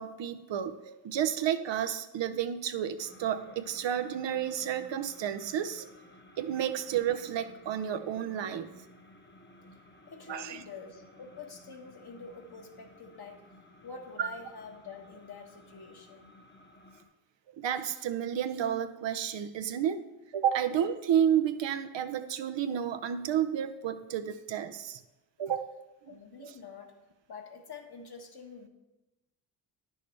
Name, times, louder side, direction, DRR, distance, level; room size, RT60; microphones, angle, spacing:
voice 1, 0.0-5.9 6.4-8.7 10.3-10.6 14.2-14.3 17.6-20.0 20.3-25.0 25.4-25.8 26.4-26.6, right 9 dB, 65° right, 9 dB, 0.7 m, -31 dB
sound 1, 3.0-17.0, left 1 dB, 20° left, 1.1 m, -56 dB
voice 2, 10.1-13.4 13.8-16.3 26.1-26.9 27.3-28.7, left 4 dB, 50° left, 3 dB, 1.4 m, -46 dB
9.7 x 6.5 x 3.2 m, 1.0 s
cardioid pair, 55°, 49 cm